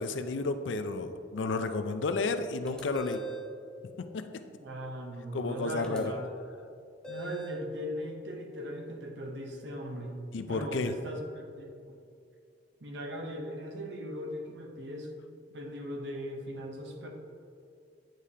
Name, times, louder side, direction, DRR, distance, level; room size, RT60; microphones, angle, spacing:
voice 1, 0.0-3.2 4.0-4.4 5.3-6.1 10.3-10.9, left 3 dB, 80° left, 9 dB, 0.4 m, -32 dB
sound 1, 2.6-3.5 5.8-6.0 7.0-7.6, right 3 dB, 5° left, 0.7 m, -41 dB
voice 2, 4.6-6.2 7.1-10.2 10.5-12.0 12.8-15.1 15.5-17.1, equal, 70° right, 2 dB, 0.8 m, -39 dB
9.0 x 4.9 x 2.8 m, 2.4 s
head